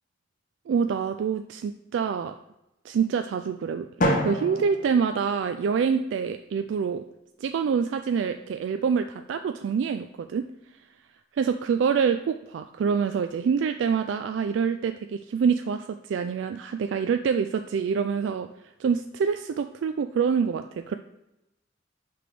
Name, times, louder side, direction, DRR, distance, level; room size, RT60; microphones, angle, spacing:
voice 1, 0.7-2.3 2.8-3.9 4.2-7.0 7.4-10.4 11.4-18.5 18.8-21.0, right 6 dB, 70° right, 8 dB, 0.3 m, -26 dB
Drum, 4.0-6.0, equal, 45° left, 0.9 m, -28 dB
5.9 x 3.4 x 4.8 m, 0.89 s
head